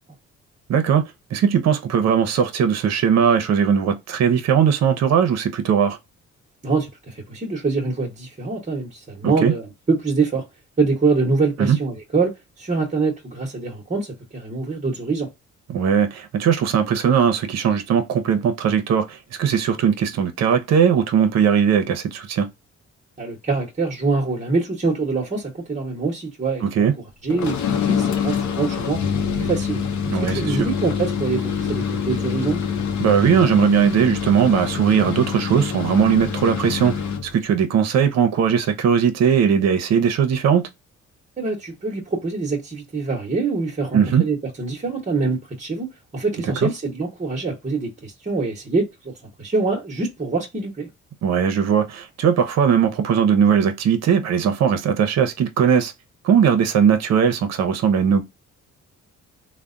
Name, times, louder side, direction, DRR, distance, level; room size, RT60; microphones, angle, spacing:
voice 1, 0.7-1.0 1.3-6.0 9.2-9.5 11.6-11.8 15.7-22.5 26.6-26.9 30.1-30.7 33.0-36.9 37.3-40.7 43.9-44.3 46.6-46.7 51.2-55.9 56.2-58.2, right 7 dB, 60° right, 0.7 m, -19 dB
voice 2, 6.6-10.4 10.8-12.3 12.6-14.1 14.3-15.3 23.2-26.6 27.2-29.0 29.4-29.8 30.2-32.6 41.4-49.1 49.4-50.9, right 4 dB, 25° right, 1.0 m, -24 dB
sound 1, 27.3-37.3, left 7 dB, 70° left, 0.7 m, -25 dB
3.4 x 2.1 x 2.4 m
cardioid pair, 90°, 30 cm